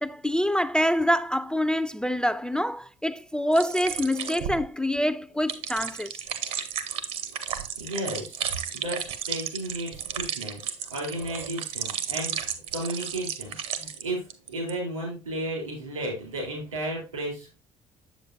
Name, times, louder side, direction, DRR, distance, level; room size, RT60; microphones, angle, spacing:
voice 1, 0.0-6.2, equal, 5° left, 0.4 m, -26 dB
sound 1, 3.5-14.0 14.3-14.7, right 8 dB, 65° right, 0.9 m, -33 dB
voice 2, 7.8-8.4 8.7-17.6, right 1 dB, 85° right, 3.9 m, -34 dB
7.6 x 7.2 x 2.6 m
figure-of-eight pair, 50°, 16 cm